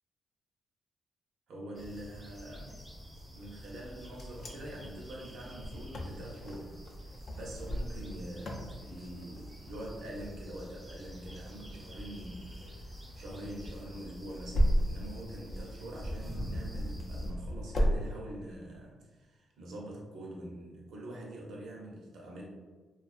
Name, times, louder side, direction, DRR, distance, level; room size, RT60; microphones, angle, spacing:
voice 1, 1.5-2.8 3.3-6.8 7.3-22.4, right 1 dB, 75° right, -2 dB, 0.6 m, -45 dB
sound 1, 1.7-17.3, equal, 10° right, 0.5 m, -49 dB
Wind, 3.8-18.0, equal, 50° left, 0.4 m, -36 dB
2.4 x 2.3 x 2.4 m, 1.3 s
cardioid pair, 115°, 0 cm